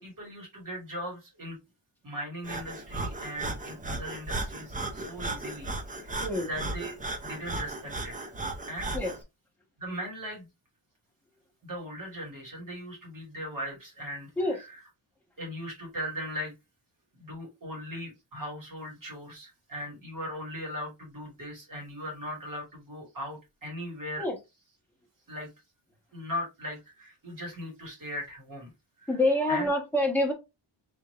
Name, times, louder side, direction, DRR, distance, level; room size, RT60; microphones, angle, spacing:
voice 1, 0.0-1.6 2.0-7.0 7.2-8.3 8.7-8.9 9.8-10.5 11.6-14.8 15.4-16.5 17.1-24.3 25.3-25.5 26.1-28.7 29.0-29.1 29.5-29.7, equal, 45° right, 2.4 m, -39 dB
Breathing, 2.4-9.2, right 2 dB, 15° right, 0.5 m, -36 dB
voice 2, 29.1-30.3, left 1 dB, 5° left, 1.2 m, -26 dB
3.6 x 3.3 x 3.3 m
wide cardioid pair, 175°, 47 cm